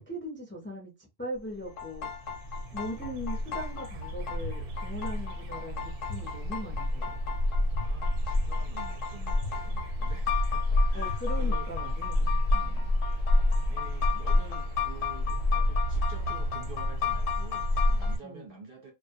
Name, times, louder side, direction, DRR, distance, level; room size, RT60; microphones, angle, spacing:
voice 1, 0.1-0.9 1.2-2.1 2.7-7.2 10.9-12.9 18.2-18.5, equal, 15° left, 0.4 m, -39 dB
sound 1, 1.4-1.5 1.6-18.2, left 1 dB, 85° right, 1.0 m, -29 dB
sound 2, 1.7-18.2, left 9 dB, 90° left, 1.0 m, -36 dB
sound 3, 4.4-4.5 5.0-5.1 6.1-6.2 6.7-6.8 7.7-7.8 8.4-8.5 9.4-9.5 10.0-10.1 11.1-11.2 11.7-11.8, left 6 dB, 55° left, 0.7 m, -37 dB
voice 2, 7.8-11.7 13.1-13.4 13.7-18.9, right 3 dB, 55° right, 0.7 m, -48 dB
2.2 x 2.1 x 2.6 m
omnidirectional pair, 1.3 m